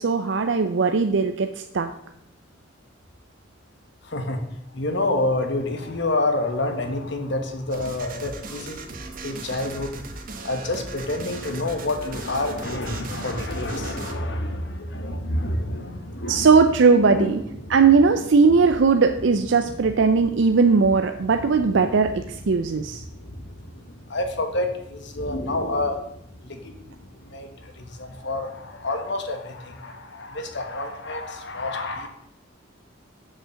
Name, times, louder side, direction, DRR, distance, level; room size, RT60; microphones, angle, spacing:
voice 1, 0.0-1.9 16.3-17.4 17.7-23.0, right 4 dB, 65° right, 7 dB, 0.5 m, -19 dB
voice 2, 4.0-16.5 17.0-18.7 19.5-32.1, left 2 dB, 60° left, 6 dB, 1.3 m, -29 dB
sound 1, 7.7-14.1, right 3 dB, 45° right, 1.0 m, -38 dB
7.2 x 6.4 x 6.3 m, 0.79 s
head